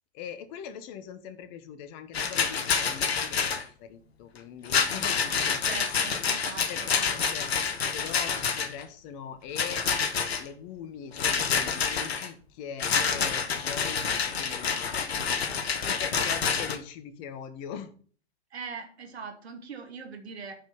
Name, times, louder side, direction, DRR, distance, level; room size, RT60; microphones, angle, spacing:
voice 1, 0.1-5.6 6.1-6.4 6.7-7.5 7.9-9.8 10.4-15.0 15.8-17.9, left 8 dB, 35° left, 10 dB, 1.4 m, -41 dB
Rattle, 2.1-3.6 4.6-8.8 9.5-10.4 11.2-12.3 12.8-16.8, left 6 dB, 65° left, 1.6 m, -28 dB
voice 2, 5.6-7.2 18.5-20.6, right 5 dB, 65° right, 3 dB, 2.5 m, -41 dB
8.7 x 5.5 x 7.1 m, 0.43 s
figure-of-eight pair, 110°, 34 cm